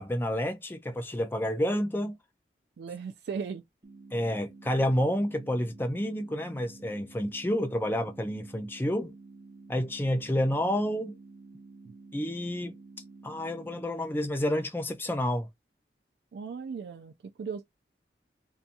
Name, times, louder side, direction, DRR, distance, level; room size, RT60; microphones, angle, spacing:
voice 1, 0.0-2.1 4.1-9.1 9.7-11.2 12.1-12.8 13.2-15.5, equal, 10° left, 0.4 m, -29 dB
voice 2, 2.8-3.6 11.8-11.9 16.3-17.6, right 6 dB, 70° right, 0.3 m, -37 dB
sound 1, 3.8-13.8, right 3 dB, 35° right, 0.8 m, -50 dB
2.7 x 2.4 x 2.5 m
head